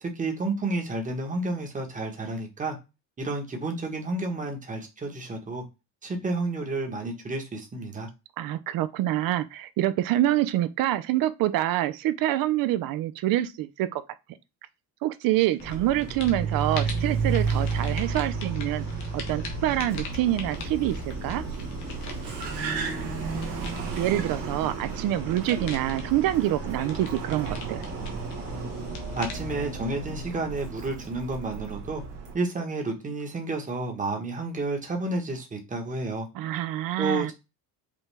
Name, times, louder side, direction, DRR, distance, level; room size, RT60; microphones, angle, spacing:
voice 1, 0.0-2.8 3.2-5.6 6.0-8.1 29.2-32.0 32.3-36.3 37.0-37.3, right 2 dB, 20° right, 1.1 m, -31 dB
voice 2, 8.4-14.0 15.0-18.8 19.1-21.4 24.0-27.8 36.3-37.3, right 14 dB, 60° right, 0.5 m, -26 dB
sound 1, 15.4-15.8 16.0-31.0, left 5 dB, 85° left, 1.1 m, -42 dB
Car, 15.6-32.3, right 5 dB, 85° right, 1.5 m, -33 dB
sound 2, 20.2-28.9, right 3 dB, 40° right, 1.1 m, -41 dB
5.2 x 2.2 x 3.3 m
cardioid pair, 110°, 39 cm